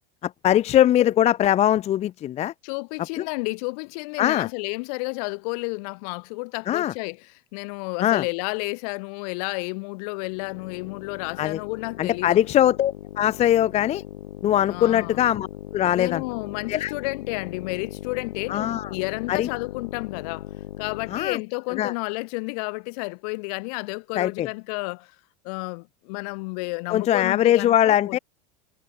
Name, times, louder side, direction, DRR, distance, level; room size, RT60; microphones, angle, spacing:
voice 1, 0.2-2.5 3.2-3.3 4.2-4.5 6.7-6.9 8.0-8.2 11.4-11.6 12.0-14.0 14.4-15.5 15.7-16.2 16.7-16.9 18.5-18.9 19.3-19.5 21.1-21.4 21.8-21.9 24.1-24.5 26.9-28.2, left 12 dB, 30° left, 0.5 m, -21 dB
voice 2, 2.6-12.4 14.7-15.2 15.9-20.5 20.8-25.1 25.4-28.2, left 32 dB, 65° left, 3.7 m, -31 dB
sound 1, 10.2-21.4, left 13 dB, 85° left, 4.5 m, -39 dB
hypercardioid pair, 100°, 21 cm